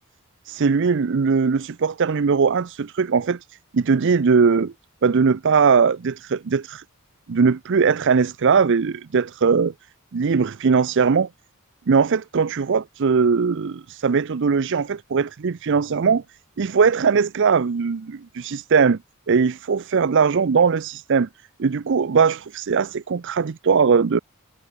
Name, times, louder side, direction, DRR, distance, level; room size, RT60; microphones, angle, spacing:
voice 1, 0.5-4.7 5.0-6.8 7.3-9.7 10.1-11.3 11.9-16.2 16.6-19.0 19.3-21.3 21.6-24.2, right 5 dB, 55° right, 0.5 m, -20 dB
head